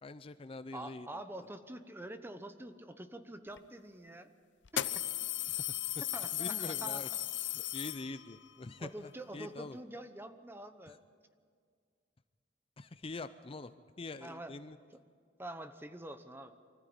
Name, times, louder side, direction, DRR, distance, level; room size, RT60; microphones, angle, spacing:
voice 1, 0.0-1.1 5.5-5.6 6.3-7.1 7.5-9.8 10.9-11.0 12.8-13.7 14.0-14.8, left 3 dB, 30° left, 12 dB, 0.5 m, -44 dB
voice 2, 0.7-4.3 4.8-5.1 6.1-7.2 8.8-11.0 14.2-14.5 15.4-16.5, right 1 dB, 15° right, 9 dB, 0.9 m, -46 dB
sound 1, 3.6-3.7 4.6-8.4, left 13 dB, 85° left, 0.6 m, -36 dB
24.5 x 14.0 x 8.8 m, 2.1 s
head